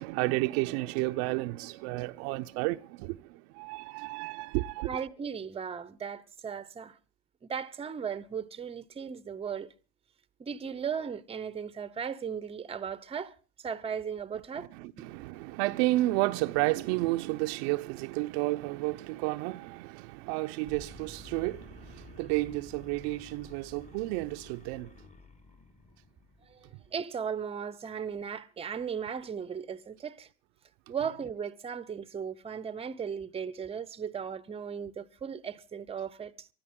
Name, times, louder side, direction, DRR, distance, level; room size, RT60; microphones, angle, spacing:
voice 1, 0.0-5.0 14.8-24.9, right 20 dB, 60° right, 0.7 m, -31 dB
voice 2, 4.8-7.0 7.4-9.7 10.4-13.3 13.6-14.7 26.5-26.6 26.9-30.3 30.9-36.5, right 7 dB, 15° right, 0.8 m, -36 dB
sound 1, 20.6-26.9, left 3 dB, 20° left, 1.4 m, -52 dB
23.5 x 13.0 x 3.7 m
hypercardioid pair, 95°, 36 cm